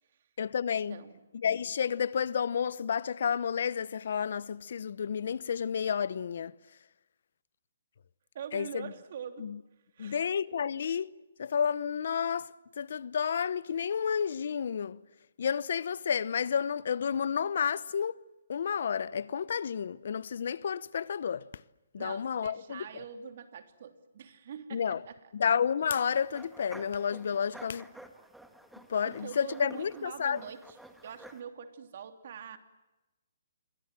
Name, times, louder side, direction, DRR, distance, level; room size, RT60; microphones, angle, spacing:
voice 1, 0.4-1.0 1.4-6.5 8.5-8.9 9.4-9.6 10.0-11.1 11.4-15.0 15.4-18.2 18.5-21.4 21.9-23.0 24.7-25.0 25.3-27.9 28.9-30.4, left 7 dB, 60° left, 0.8 m, -31 dB
voice 2, 0.9-1.2 8.3-9.5 9.9-10.2 22.0-25.3 29.0-30.8 31.0-32.6, right 8 dB, 50° right, 3.0 m, -44 dB
sound 1, 25.8-31.4, right 1 dB, ahead, 1.7 m, -52 dB
29.0 x 24.0 x 7.6 m
hypercardioid pair, 155°, 0 cm